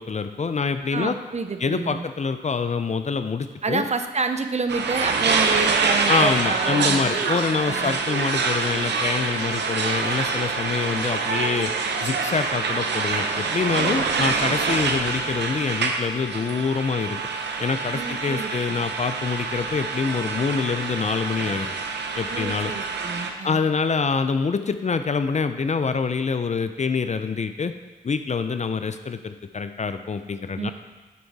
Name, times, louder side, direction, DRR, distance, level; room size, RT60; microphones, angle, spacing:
voice 1, 0.0-1.2 1.6-3.8 6.1-11.7 12.0-17.2 17.6-21.7 22.2-22.7 23.4-27.7 28.0-30.7, left 5 dB, 40° left, 10 dB, 0.5 m, -25 dB
voice 2, 0.9-2.1 3.6-7.3 7.7-7.9 13.8-14.3 17.9-18.8 22.3-23.6 30.6-30.7, right 4 dB, 40° right, 8 dB, 0.7 m, -29 dB
sound 1, 4.7-23.3, right 4 dB, 75° right, 0.7 m, -26 dB
8.6 x 4.5 x 4.1 m, 1.3 s
supercardioid pair, 45°, 18 cm